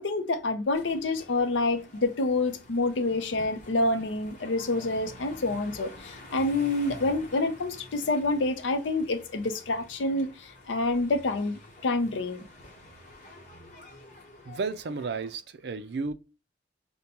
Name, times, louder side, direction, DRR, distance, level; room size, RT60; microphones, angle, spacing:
voice 1, 0.0-12.4, left 2 dB, 85° left, 0.6 m, -28 dB
sound 1, 0.7-15.4, left 1 dB, 40° left, 0.9 m, -49 dB
voice 2, 14.5-16.1, right 4 dB, 65° right, 0.4 m, -33 dB
5.2 x 2.2 x 2.9 m
head